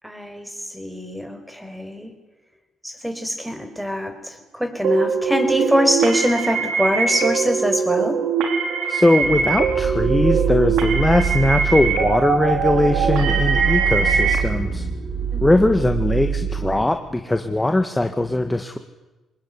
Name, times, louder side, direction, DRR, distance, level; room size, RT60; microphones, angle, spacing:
voice 1, 0.0-2.1 2.8-8.2 15.3-15.9, equal, 5° right, 7 dB, 5.2 m, -24 dB
sound 1, 4.8-14.4, right 5 dB, 90° right, 4.2 m, -22 dB
voice 2, 8.9-14.9 15.4-18.8, left 2 dB, 10° left, 6 dB, 1.8 m, -20 dB
sound 2, 9.2-16.9, right 7 dB, 70° right, 4.9 m, -25 dB
25.0 x 20.0 x 9.8 m, 1.1 s
cardioid pair, 90°, 0 cm